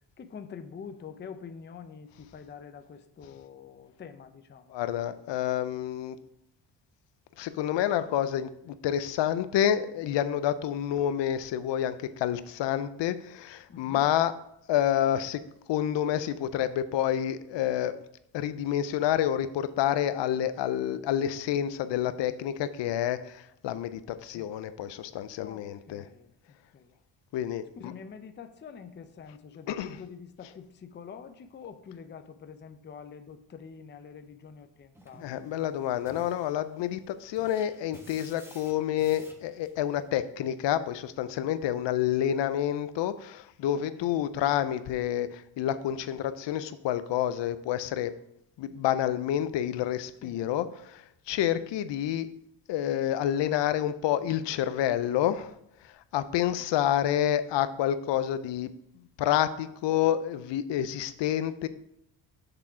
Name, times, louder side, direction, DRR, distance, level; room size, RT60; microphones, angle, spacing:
voice 1, 0.2-4.8 13.7-14.1 24.3-24.5 25.4-26.3 26.7-26.9 27.8-35.4 43.7-44.2 50.2-50.4, left 6 dB, 25° left, 8 dB, 0.5 m, -46 dB
voice 2, 4.7-6.2 7.4-14.3 14.7-15.4 15.7-17.9 18.3-26.0 27.3-27.9 29.7-30.0 35.2-48.1 48.6-52.3 52.7-55.5 55.8-58.7 59.2-61.7, left 11 dB, 75° left, 13 dB, 0.6 m, -28 dB
sound 1, 34.9-40.1, equal, 5° right, 1.2 m, -54 dB
6.8 x 3.6 x 5.7 m, 0.76 s
cardioid pair, 85°, 44 cm